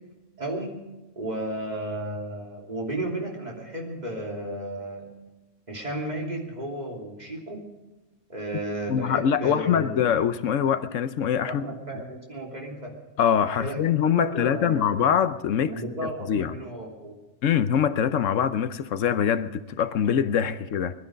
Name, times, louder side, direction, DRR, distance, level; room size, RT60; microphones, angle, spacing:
voice 1, 0.4-0.8 1.1-5.1 5.7-7.7 8.3-10.1 11.5-12.9 13.6-13.8 14.1-15.0 15.7-17.2, right 1 dB, 35° right, 3.2 m, -33 dB
voice 2, 8.9-11.6 13.2-16.5 17.4-20.9, left 8 dB, 80° left, 1.1 m, -24 dB
20.5 x 12.5 x 5.2 m
omnidirectional pair, 1.3 m